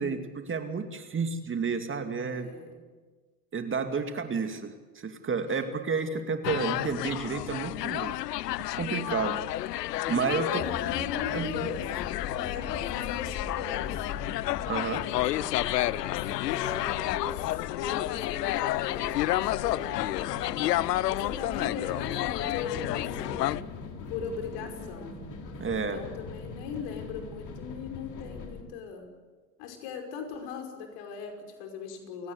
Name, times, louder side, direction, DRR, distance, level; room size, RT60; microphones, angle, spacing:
voice 1, 0.0-2.5 3.5-8.2 8.7-9.4 10.1-10.6 11.3-11.7 14.7-15.0 25.6-26.0, right 5 dB, 25° right, 7 dB, 2.4 m, -31 dB
voice 2, 2.2-2.8 10.4-11.9 12.2-14.4 14.7-20.0 21.0-25.2 25.9-29.1 29.6-32.3, left 6 dB, 60° left, 4 dB, 5.7 m, -39 dB
sound 1, 6.4-23.6, left 16 dB, 80° left, 0.7 m, -30 dB
sound 2, 10.6-28.6, left 5 dB, 40° left, 3.9 m, -41 dB
29.5 x 17.5 x 8.3 m, 1.4 s
hypercardioid pair, 80°, 48 cm